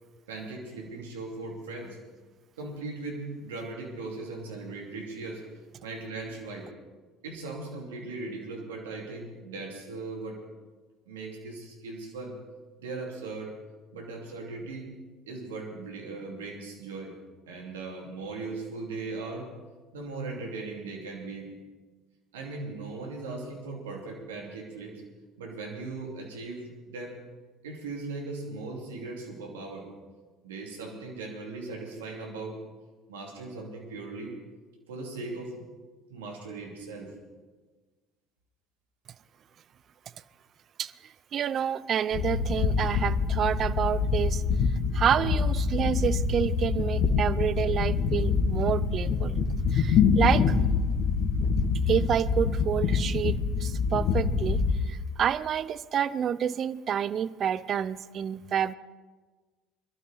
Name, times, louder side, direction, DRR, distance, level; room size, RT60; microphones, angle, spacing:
voice 1, 0.3-2.0 2.6-5.4 5.8-6.7 7.2-10.4 11.1-12.3 12.8-13.5 13.9-14.9 15.3-17.1 17.5-19.5 19.9-21.5 22.3-25.0 25.4-27.2 27.6-29.9 30.4-32.6 33.1-34.3 34.9-35.6 36.1-37.1, right 3 dB, 85° right, 0 dB, 2.8 m, -38 dB
voice 2, 41.3-44.4 44.9-49.4 49.7-50.6 51.9-58.7, right 9 dB, 50° right, 17 dB, 0.5 m, -28 dB
sound 1, 42.1-54.8, left 5 dB, 60° left, 1.6 m, -25 dB
22.0 x 12.5 x 4.1 m, 1.4 s
hypercardioid pair, 60°, 0 cm